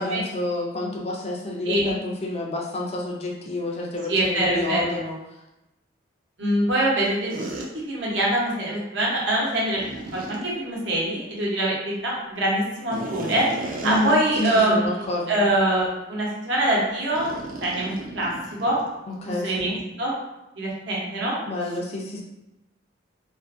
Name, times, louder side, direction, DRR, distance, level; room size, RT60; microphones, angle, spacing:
voice 1, 0.0-5.2 13.8-15.4 19.2-19.8 21.5-22.2, left 1 dB, 35° left, -1 dB, 0.4 m, -29 dB
voice 2, 4.1-5.0 6.4-7.5 7.7-9.8 10.1-17.3 17.6-18.8 19.2-20.1 20.6-21.4, right 1 dB, 75° right, -4 dB, 0.8 m, -24 dB
sound 1, 7.3-7.7 9.7-10.4 12.9-14.6 15.0-15.1 15.7-15.9 17.2-19.0, right 2 dB, 45° right, 0.4 m, -35 dB
2.5 x 2.4 x 2.5 m, 0.95 s
head